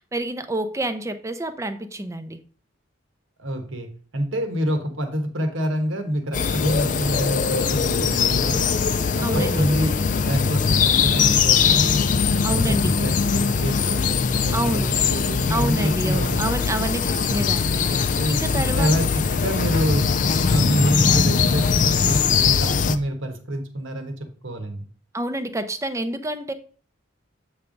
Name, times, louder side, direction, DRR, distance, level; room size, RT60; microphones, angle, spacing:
voice 1, 0.0-2.4 9.2-9.7 12.4-13.0 14.5-14.9 15.5-18.9 25.1-26.5, right 1 dB, 15° right, 10 dB, 0.5 m, -28 dB
voice 2, 3.4-8.7 9.2-11.9 12.3-16.6 18.1-20.1 20.5-24.9, equal, 70° right, 5 dB, 1.3 m, -27 dB
sound 1, 6.3-23.0, left 5 dB, 40° left, 0.4 m, -21 dB
8.0 x 3.4 x 5.2 m, 0.42 s
head